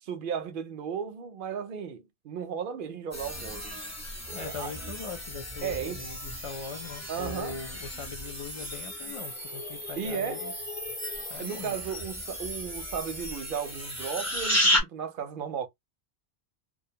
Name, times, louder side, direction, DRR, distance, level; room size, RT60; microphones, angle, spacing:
voice 1, 0.0-3.8 4.3-4.7 5.6-6.0 7.1-7.6 10.0-10.4 11.4-15.7, right 7 dB, 65° right, 0.7 m, -35 dB
sound 1, 3.1-14.8, left 1 dB, 15° left, 0.7 m, -33 dB
voice 2, 4.3-10.5 11.3-11.8, left 5 dB, 60° left, 0.3 m, -41 dB
2.4 x 2.2 x 2.7 m
omnidirectional pair, 1.1 m